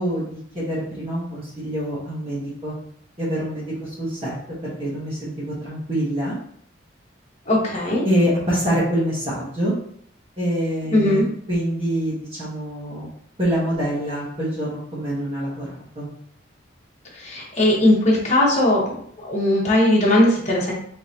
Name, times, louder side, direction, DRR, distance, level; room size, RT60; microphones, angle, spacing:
voice 1, 0.0-2.7 3.2-4.4 4.6-6.4 8.0-9.7 10.4-11.2 11.5-13.1 13.4-15.7 15.9-16.1, equal, 30° right, -8 dB, 1.2 m, -25 dB
voice 2, 7.5-8.1 10.9-11.2 17.1-18.8 19.2-20.7, left 1 dB, 35° left, -4 dB, 1.2 m, -18 dB
3.8 x 3.5 x 2.9 m, 0.65 s
head